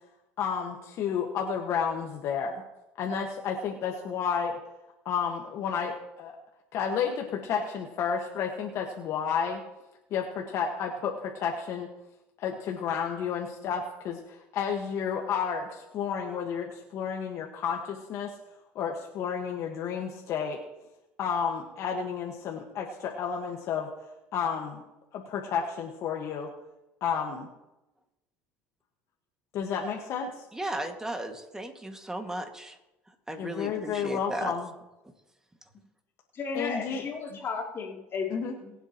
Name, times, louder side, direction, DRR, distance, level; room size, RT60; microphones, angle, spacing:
voice 1, 0.4-2.6 3.0-4.6 5.0-6.3 6.7-9.6 10.1-11.9 12.4-18.3 18.7-20.6 21.2-23.9 24.3-24.8 25.1-26.5 27.0-27.5 29.5-30.4 33.4-34.7 36.5-37.0 38.3-38.5, left 7 dB, 60° left, 1 dB, 1.5 m, -31 dB
voice 2, 30.5-32.8 33.3-34.5, right 1 dB, 10° right, 4 dB, 2.0 m, -35 dB
voice 3, 36.3-38.3 38.6-38.7, left 5 dB, 45° left, -1 dB, 2.9 m, -34 dB
22.5 x 8.0 x 3.0 m, 0.96 s
supercardioid pair, 90°, 6 cm